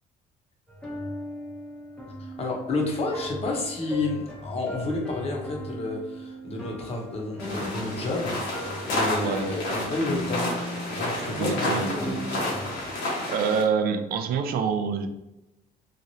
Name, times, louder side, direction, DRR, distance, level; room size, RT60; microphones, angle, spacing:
sound 1, 0.7-12.9, equal, 5° left, 0.7 m, -38 dB
voice 1, 2.2-10.5 10.9-12.1, left 2 dB, 35° left, -1 dB, 0.8 m, -30 dB
sound 2, 7.4-13.6, left 1 dB, 90° left, 1.1 m, -30 dB
voice 2, 11.4-12.2 13.3-15.1, right 6 dB, 65° right, 7 dB, 0.4 m, -26 dB
3.0 x 2.5 x 2.7 m, 0.95 s
cardioid pair, 110°, 17 cm